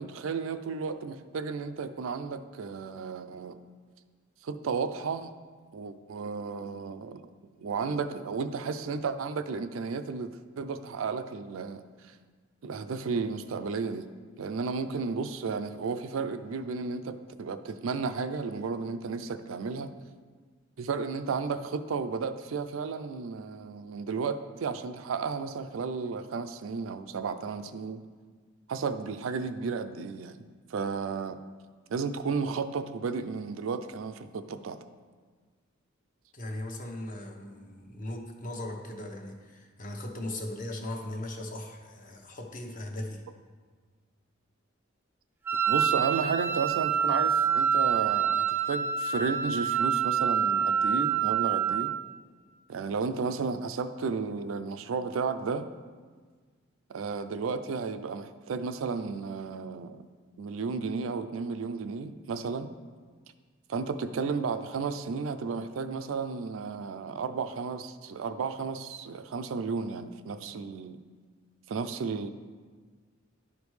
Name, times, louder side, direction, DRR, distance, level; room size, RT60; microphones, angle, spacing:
voice 1, 0.0-3.6 4.4-5.3 5.7-7.3 7.6-11.8 12.6-14.1 14.4-19.9 20.8-28.0 28.7-30.4 30.7-31.4 31.9-34.8 45.7-51.9 52.7-55.7 56.9-60.0 60.4-62.7 63.7-71.0 71.7-72.3, right 5 dB, 80° right, 10 dB, 0.4 m, -33 dB
voice 2, 36.3-43.2, left 1 dB, 40° left, 2 dB, 0.9 m, -38 dB
Wind instrument woodwind instrument, 45.5-52.1, right 7 dB, 10° right, 0.3 m, -26 dB
11.0 x 5.1 x 3.2 m, 1.5 s
head